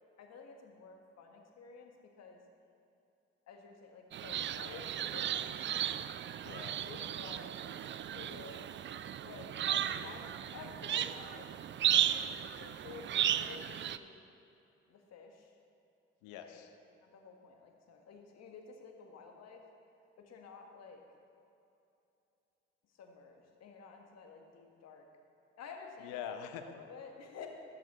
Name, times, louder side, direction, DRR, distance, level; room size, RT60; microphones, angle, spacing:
voice 1, 0.2-1.9 2.2-2.4 3.5-5.7 6.8-7.8 8.0-8.7 9.2-9.5 10.0-10.2 10.5-11.5 11.9-14.2 14.9-15.5 16.4-16.7 17.0-19.6 20.2-21.0 23.0-25.0 25.6-26.2 26.6-27.5, left 5 dB, 60° left, 3 dB, 1.5 m, -51 dB
sound 1, 4.1-14.0, right 10 dB, 40° right, 0.4 m, -35 dB
voice 2, 6.4-6.8 9.7-10.3 16.2-16.7 26.0-26.6, left 9 dB, 75° left, 8 dB, 0.8 m, -45 dB
13.5 x 7.5 x 4.3 m, 2.7 s
hypercardioid pair, 50°, 30 cm